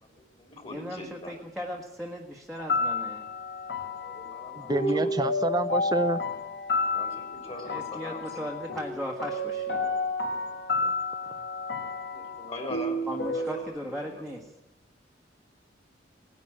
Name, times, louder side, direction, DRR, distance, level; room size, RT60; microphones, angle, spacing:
voice 1, 0.0-1.4 4.0-5.2 6.9-8.6 12.1-14.2, left 1 dB, 35° left, 4 dB, 3.7 m, -42 dB
voice 2, 0.7-3.3 7.4-9.8 13.1-14.5, equal, ahead, -1 dB, 1.4 m, -37 dB
sound 1, 2.6-13.6, left 2 dB, 65° left, 1.8 m, -31 dB
voice 3, 4.6-6.2 10.8-10.9, right 2 dB, 25° right, 11 dB, 0.6 m, -28 dB
18.0 x 10.5 x 7.4 m, 0.98 s
head